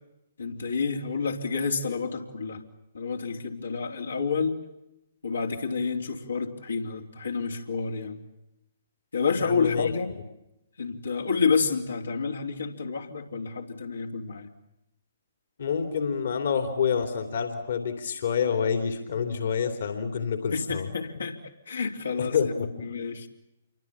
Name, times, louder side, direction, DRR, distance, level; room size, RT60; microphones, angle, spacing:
voice 1, 0.4-2.6 2.9-4.6 5.2-8.2 9.1-10.1 10.8-14.5 20.5-21.4 21.7-23.3, left 5 dB, 75° left, 1 dB, 3.5 m, -29 dB
voice 2, 9.4-9.9 15.6-20.9 22.2-22.5, left 6 dB, 60° left, 6 dB, 3.2 m, -27 dB
28.0 x 24.0 x 8.7 m, 0.90 s
figure-of-eight pair, 125°, 0 cm